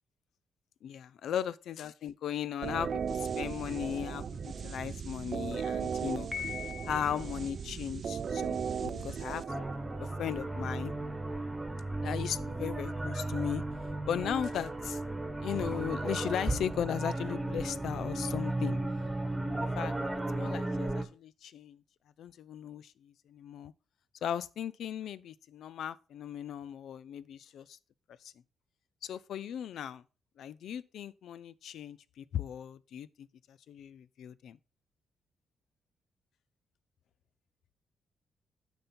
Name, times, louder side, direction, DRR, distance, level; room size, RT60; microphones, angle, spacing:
voice 1, 0.8-6.3 6.8-9.4 10.0-10.9 12.0-13.6 14.1-15.0 15.4-18.8 19.7-19.9 20.4-21.8 22.2-23.7 24.2-27.8 28.2-28.3 29.0-30.0 30.4-34.6, left 9 dB, 75° left, 0.5 m, -37 dB
sound 1, 2.6-10.3, right 6 dB, 50° right, 0.5 m, -36 dB
Piano, 6.3-7.4, left 8 dB, 30° left, 0.6 m, -41 dB
sound 2, 9.5-21.0, right 2 dB, 10° right, 1.2 m, -35 dB
9.3 x 5.4 x 4.3 m
cardioid pair, 110°, 0 cm